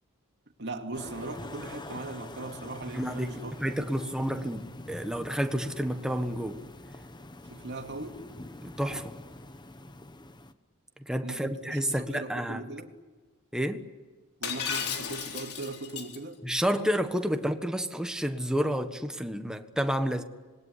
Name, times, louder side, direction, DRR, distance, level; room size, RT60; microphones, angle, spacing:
voice 1, 0.6-4.0 7.5-8.2 11.2-12.9 14.4-16.4, right 2 dB, 50° right, 2.4 m, -39 dB
sound 1, 0.9-10.5, left 2 dB, 20° left, 1.0 m, -45 dB
voice 2, 2.9-6.6 8.6-9.2 11.0-12.6 13.5-13.9 16.4-20.2, equal, 5° right, 1.4 m, -30 dB
Shatter, 14.4-16.2, left 7 dB, 85° left, 4.0 m, -34 dB
26.5 x 20.5 x 9.9 m
head